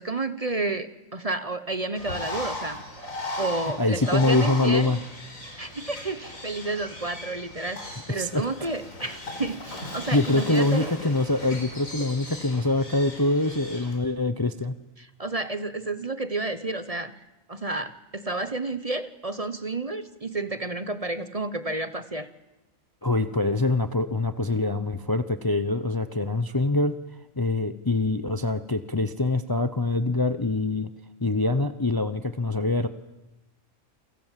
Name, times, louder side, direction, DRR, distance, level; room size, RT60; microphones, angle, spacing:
voice 1, 0.0-2.8 3.4-4.9 5.6-10.9 15.0-17.2 17.5-22.3, right 2 dB, 30° right, 12 dB, 1.2 m, -31 dB
Bird, 2.0-14.0, left 1 dB, 75° left, 5.6 m, -37 dB
voice 2, 3.8-5.0 8.1-8.4 10.1-14.7 23.0-27.0 27.4-30.9 31.2-32.9, left 2 dB, 20° left, 11 dB, 0.8 m, -24 dB
29.0 x 24.0 x 7.6 m, 0.97 s
omnidirectional pair, 1.4 m